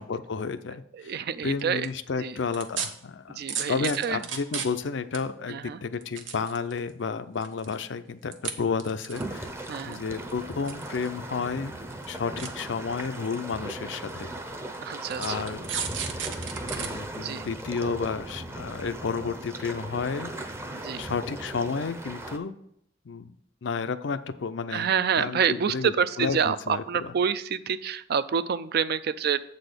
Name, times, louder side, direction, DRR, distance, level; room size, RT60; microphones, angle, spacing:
voice 1, 0.0-1.2 1.4-3.4 3.7-9.5 9.8-11.8 12.1-14.3 15.2-15.7 16.8-20.3 21.0-22.5 23.1-23.3 23.6-24.9 25.2-25.9 26.2-27.1, left 5 dB, 65° left, 11 dB, 0.5 m, -31 dB
voice 2, 0.9-1.9 2.2-2.4 3.3-4.2 5.5-5.8 9.7-10.0 14.8-15.5 17.2-17.5 20.7-21.0 24.7-29.4, right 7 dB, 55° right, 14 dB, 0.4 m, -27 dB
sound 1, 1.6-1.9 2.5-2.9 3.5-4.9 5.1-5.2 5.9-6.9 7.4-7.8 8.3-8.5 8.8-9.5 10.3-11.1 11.4-11.5 11.9-12.0 12.4-12.5 13.3-13.4 14.1-14.2 15.1-16.9 17.3-17.4, right 8 dB, 75° right, 0.9 m, -33 dB
sound 2, 9.1-22.4, right 1 dB, 15° right, 0.6 m, -38 dB
7.8 x 4.2 x 6.6 m, 0.73 s
head